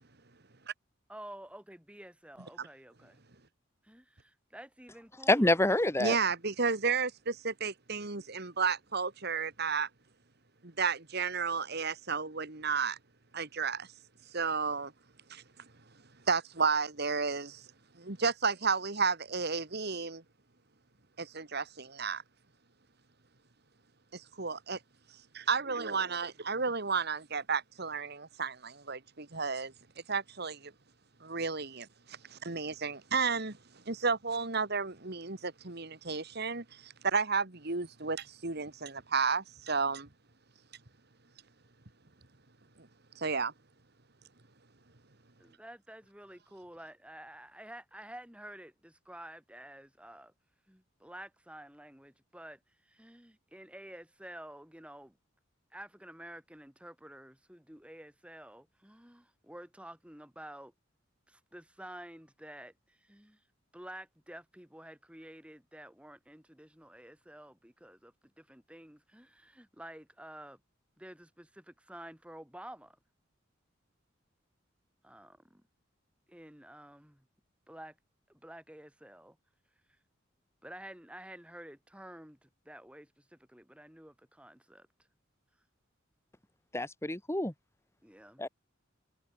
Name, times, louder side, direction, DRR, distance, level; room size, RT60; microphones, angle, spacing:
voice 1, 1.1-3.2 3.8-5.6 25.6-25.8 45.4-50.3 50.7-55.2 55.7-60.7 61.3-63.4 63.7-70.6 71.0-73.0 75.0-75.6 76.3-77.3 77.7-78.0 78.3-79.4 80.6-84.9 88.0-88.5, right 1 dB, 5° right, 7.3 m, -50 dB
voice 2, 5.3-6.2 86.7-87.5 88.4-88.5, left 1 dB, 15° left, 1.8 m, -27 dB
voice 3, 6.0-9.9 10.6-13.0 13.3-13.9 14.3-14.9 15.3-15.4 16.3-17.6 18.0-20.2 21.2-22.2 24.1-24.8 25.3-29.7 30.1-30.7 31.2-33.6 33.9-40.1 42.8-42.9 43.2-43.5, right 5 dB, 55° right, 2.3 m, -32 dB
head